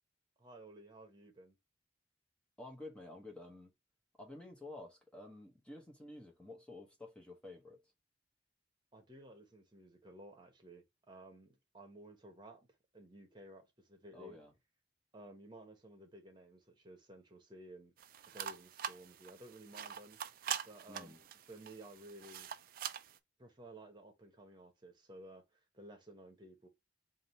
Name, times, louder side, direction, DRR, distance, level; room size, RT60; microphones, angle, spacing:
voice 1, 0.4-1.6 8.9-12.7 12.9-14.4 15.1-17.9 18.3-20.2 20.6-22.5 23.4-26.7, right 1 dB, 25° right, 1.1 m, -55 dB
voice 2, 2.6-3.7 4.2-7.8 14.1-14.5 20.9-21.2, left 2 dB, 5° left, 1.0 m, -51 dB
sound 1, 18.0-23.2, right 9 dB, 50° right, 0.4 m, -44 dB
3.6 x 2.7 x 4.3 m
head